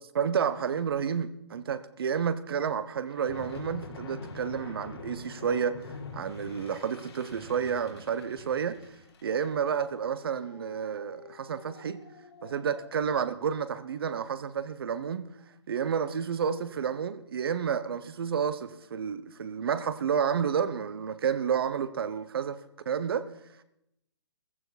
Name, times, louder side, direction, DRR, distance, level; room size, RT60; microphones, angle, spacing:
voice 1, 0.1-5.8 6.1-8.8 9.2-12.0 12.4-15.3 15.7-22.6 22.8-23.2, right 7 dB, 60° right, 1.1 m, -30 dB
sound 1, 3.1-13.7, left 4 dB, 70° left, 3.5 m, -46 dB
15.5 x 15.0 x 4.2 m
hypercardioid pair, 155°, 14 cm